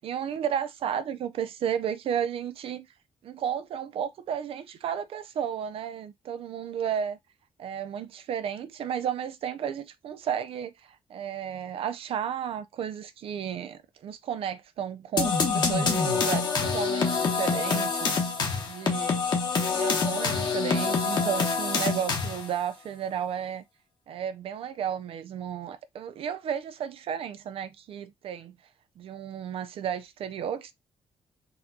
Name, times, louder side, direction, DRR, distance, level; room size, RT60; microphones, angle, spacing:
voice 1, 0.0-2.9 3.2-7.2 7.6-18.2 18.6-19.2 19.7-23.6 24.1-28.6 29.0-30.7, right 8 dB, 70° right, 0.4 m, -33 dB
sound 1, 15.2-22.5, left 5 dB, 50° left, 1.0 m, -26 dB
4.0 x 2.3 x 2.7 m
cardioid pair, 90°, 10 cm